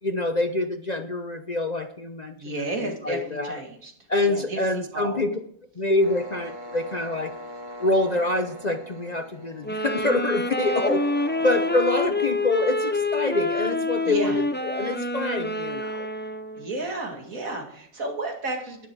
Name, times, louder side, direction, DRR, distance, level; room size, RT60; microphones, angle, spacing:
voice 1, 0.0-3.6 4.1-5.4 5.8-7.3 7.8-11.1 11.4-16.1, left 2 dB, 40° left, 7 dB, 0.7 m, -26 dB
voice 2, 2.4-3.9 4.2-5.2 14.0-14.4 16.6-18.9, right 2 dB, 70° right, 2 dB, 2.7 m, -32 dB
sound 1, 6.0-13.7, equal, 35° right, 2.1 m, -42 dB
sound 2, 9.6-16.7, left 2 dB, 15° left, 0.3 m, -27 dB
11.0 x 10.5 x 4.6 m, 0.63 s
omnidirectional pair, 1.5 m